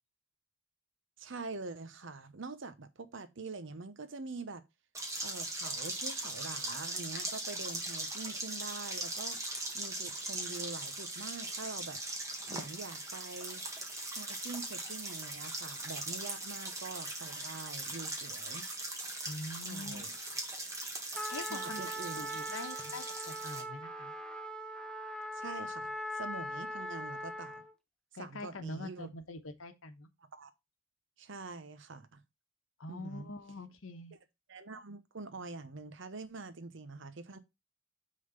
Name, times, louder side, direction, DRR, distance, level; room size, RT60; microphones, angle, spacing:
voice 1, 1.2-4.6 5.2-9.4 9.7-12.0 12.5-13.6 14.1-18.7 19.6-20.1 21.5-22.2 22.9-23.0 25.3-27.6 28.2-29.1 30.3-30.5 31.2-32.2 32.9-33.3 34.5-37.4, right 3 dB, 65° right, 0.9 m, -45 dB
sound 1, 4.9-23.6, right 2 dB, 15° right, 1.6 m, -40 dB
voice 2, 19.3-20.0 20.9-21.0 21.3-21.9 22.2-24.1 28.1-30.1 32.8-34.1, left 2 dB, 90° left, 1.1 m, -44 dB
Trumpet, 21.1-27.7, equal, 5° left, 0.7 m, -41 dB
6.5 x 3.9 x 5.2 m
head